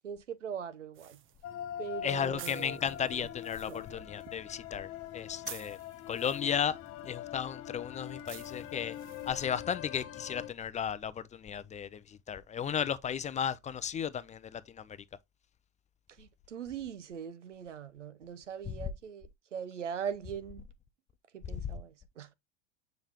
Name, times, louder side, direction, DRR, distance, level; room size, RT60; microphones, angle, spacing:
voice 1, 0.0-1.2 1.8-2.8 3.2-3.3 3.7-4.0 16.2-20.7 21.3-22.3, right 7 dB, 90° right, 0.9 m, -41 dB
sound 1, 0.9-9.6, right 10 dB, 35° right, 0.9 m, -53 dB
sound 2, 1.4-10.5, left 11 dB, 40° left, 0.9 m, -43 dB
voice 2, 2.0-5.8 6.1-6.8 7.1-8.9 9.3-14.8, left 8 dB, 20° left, 0.5 m, -34 dB
7.3 x 5.2 x 2.9 m
hypercardioid pair, 90°, 35 cm